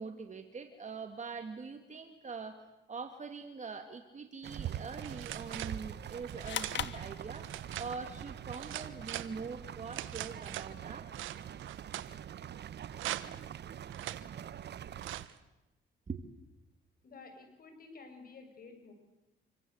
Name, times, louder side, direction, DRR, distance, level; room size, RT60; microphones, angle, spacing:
voice 1, 0.0-11.1 16.1-16.3, right 5 dB, 35° right, 6 dB, 2.4 m, -43 dB
sound 1, 4.4-15.3, right 10 dB, 60° right, 1.1 m, -44 dB
sound 2, 5.0-5.8 6.3-6.8 7.3-7.9 8.5-9.3 9.9-10.7 11.1-12.1 12.9-13.4 13.9-14.2 15.0-15.4, right 14 dB, 90° right, 1.3 m, -42 dB
sound 3, 6.4-7.9, left 10 dB, 65° left, 1.7 m, -39 dB
voice 2, 17.0-18.9, left 4 dB, 45° left, 6 dB, 7.3 m, -52 dB
27.0 x 25.5 x 8.2 m, 0.98 s
cardioid pair, 90°, 20 cm